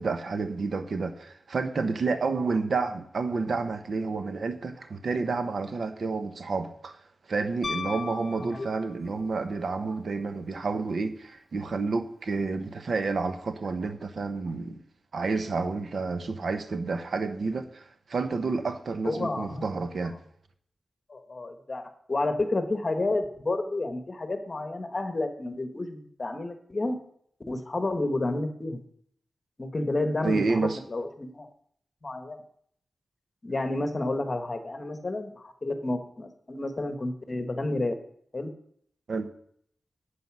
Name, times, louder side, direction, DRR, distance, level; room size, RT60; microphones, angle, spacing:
voice 1, 0.0-7.0 7.3-14.8 15.1-20.1 30.2-30.8 39.1-39.3, right 4 dB, 65° right, 1.0 m, -30 dB
Piano, 7.6-9.2 11.6-11.7, left 5 dB, 55° left, 0.9 m, -36 dB
voice 2, 8.4-8.7 19.0-19.6 21.1-27.0 27.5-28.8 29.6-31.5 32.0-32.4 33.4-38.0 38.3-38.5, left 2 dB, 35° left, 1.4 m, -30 dB
9.5 x 8.3 x 6.2 m
wide cardioid pair, 130°, 0 cm